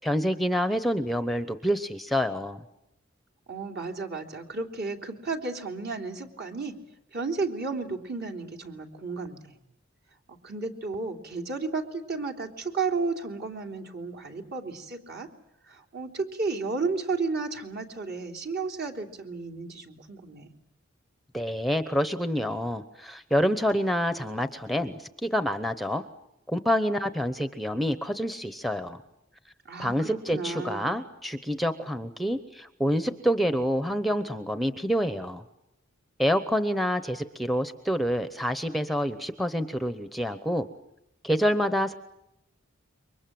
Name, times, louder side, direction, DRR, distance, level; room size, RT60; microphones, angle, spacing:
voice 1, 0.0-2.6 21.3-26.0 26.5-29.0 29.8-35.4 36.2-40.7 41.2-41.9, equal, ahead, 11 dB, 0.9 m, -27 dB
voice 2, 3.5-6.8 7.1-9.6 10.4-15.3 15.7-20.5 29.7-31.0, right 4 dB, 55° right, 3 dB, 3.3 m, -33 dB
28.0 x 24.0 x 7.7 m, 0.84 s
head